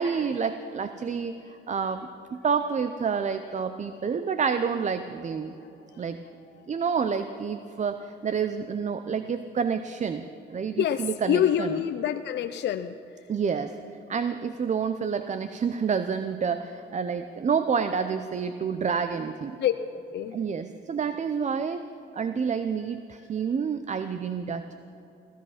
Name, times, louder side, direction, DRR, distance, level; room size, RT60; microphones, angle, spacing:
voice 1, 0.0-5.5 6.0-6.2 6.7-11.7 13.3-13.7 14.1-19.6 20.3-21.8 22.1-24.7, right 6 dB, 35° right, 10 dB, 0.6 m, -29 dB
voice 2, 5.6-6.1 6.6-6.7 10.8-13.3 19.6-19.7 20.1-20.4, left 10 dB, 60° left, 8 dB, 0.5 m, -27 dB
17.0 x 13.0 x 5.8 m, 2.9 s
cardioid pair, 90°, 20 cm